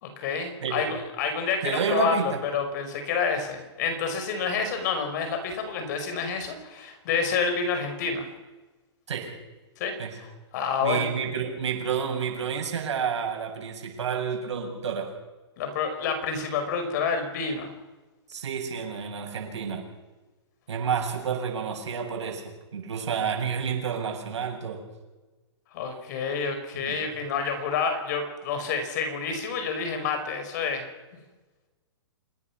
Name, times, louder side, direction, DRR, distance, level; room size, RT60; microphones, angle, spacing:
voice 1, 0.0-8.2 9.8-9.9 10.2-10.3 10.5-11.1 15.6-17.7 25.7-30.8, left 5 dB, 40° left, 6 dB, 5.1 m, -28 dB
voice 2, 0.6-0.9 1.6-2.4 9.1-9.4 10.0-10.2 10.8-15.1 18.3-19.9 20.7-22.4 22.7-24.9 26.8-27.0, right 6 dB, 85° right, 2 dB, 7.5 m, -30 dB
27.5 x 19.5 x 6.0 m, 1.2 s
hypercardioid pair, 165°, 14 cm